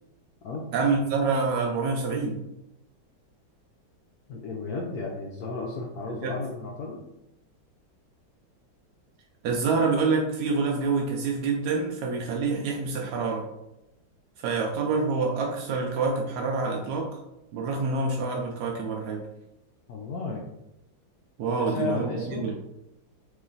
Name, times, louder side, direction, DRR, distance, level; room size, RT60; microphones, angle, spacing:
voice 1, 0.7-2.4 6.1-6.4 9.4-13.5 14.4-17.2 17.5-19.2 21.4-22.5, right 4 dB, 75° right, 0 dB, 0.9 m, -27 dB
voice 2, 4.3-7.0 19.9-20.4 21.5-22.5, left 4 dB, 85° left, -1 dB, 0.8 m, -33 dB
3.1 x 3.0 x 3.8 m, 0.90 s
omnidirectional pair, 2.2 m